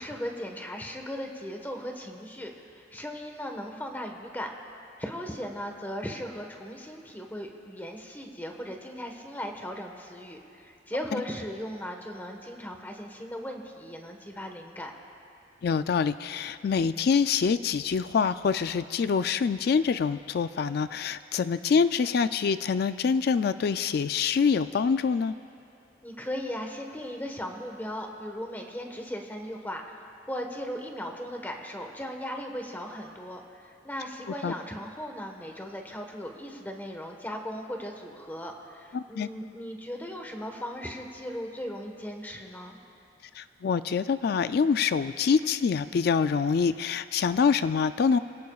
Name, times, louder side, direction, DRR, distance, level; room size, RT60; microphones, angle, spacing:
voice 1, 0.0-4.5 5.0-14.9 26.0-42.8, equal, 10° left, 2 dB, 1.3 m, -37 dB
voice 2, 15.6-25.3 34.4-34.5 38.9-39.3 43.3-48.2, left 6 dB, 60° left, 12 dB, 0.3 m, -25 dB
26.5 x 17.5 x 2.4 m, 2.6 s
head